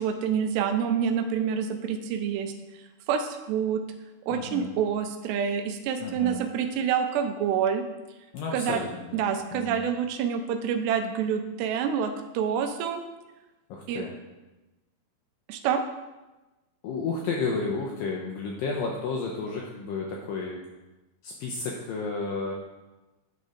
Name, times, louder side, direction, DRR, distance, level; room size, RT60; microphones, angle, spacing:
voice 1, 0.0-2.5 3.1-3.8 4.3-7.8 8.5-8.8 9.1-13.0 13.9-14.0 15.5-15.8, right 7 dB, 85° right, 7 dB, 2.8 m, -27 dB
voice 2, 4.3-4.7 6.0-6.5 8.3-9.2 9.5-9.8 13.7-14.1 16.8-20.6 21.2-22.5, left 4 dB, 85° left, -1 dB, 2.0 m, -32 dB
9.4 x 4.0 x 4.9 m, 1.1 s
omnidirectional pair, 4.8 m